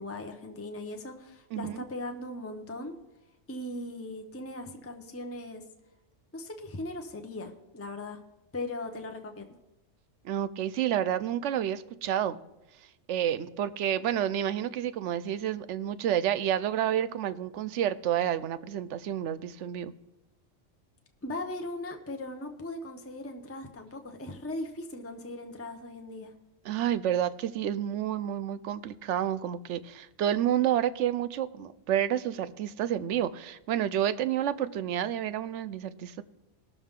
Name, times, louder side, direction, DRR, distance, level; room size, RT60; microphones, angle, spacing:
voice 1, 0.0-3.0 3.5-5.6 6.3-8.2 8.5-9.5 21.2-26.3, left 2 dB, 15° left, 5 dB, 0.7 m, -39 dB
voice 2, 1.5-1.8 10.2-12.4 13.1-19.9 26.6-36.2, right 10 dB, 75° right, 15 dB, 0.9 m, -29 dB
19.5 x 6.7 x 3.7 m, 0.98 s
omnidirectional pair, 1.3 m